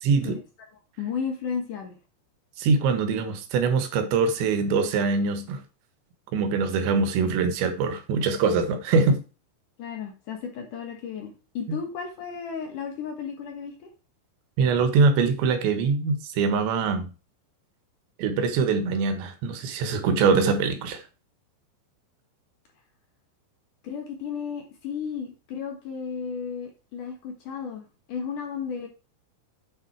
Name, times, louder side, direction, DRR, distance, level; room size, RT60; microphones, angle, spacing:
voice 1, 0.0-0.4 2.6-5.6 6.3-9.2 11.7-11.8 14.6-17.1 18.2-21.0, right 4 dB, 85° right, 3.7 m, -23 dB
voice 2, 1.0-2.0 9.8-13.9 23.8-28.9, left 6 dB, 60° left, 2.5 m, -34 dB
9.0 x 6.9 x 4.6 m
omnidirectional pair, 5.1 m